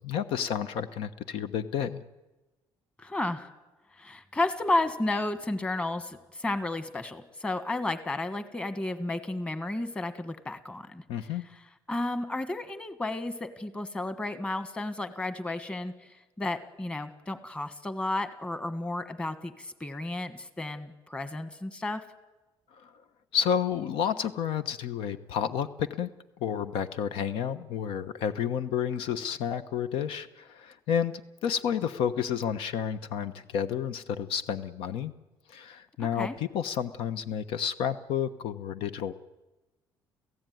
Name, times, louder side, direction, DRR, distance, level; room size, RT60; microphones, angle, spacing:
voice 1, 0.0-2.0 11.1-11.4 22.7-22.9 23.3-26.1 26.4-35.1 35.5-39.1, left 8 dB, 90° left, 12 dB, 1.1 m, -30 dB
voice 2, 3.0-3.5 4.0-11.0 11.9-15.9 16.4-22.0 36.0-36.3, left 2 dB, 15° left, 10 dB, 1.4 m, -32 dB
29.5 x 16.0 x 9.4 m, 1.1 s
cardioid pair, 160°, 9 cm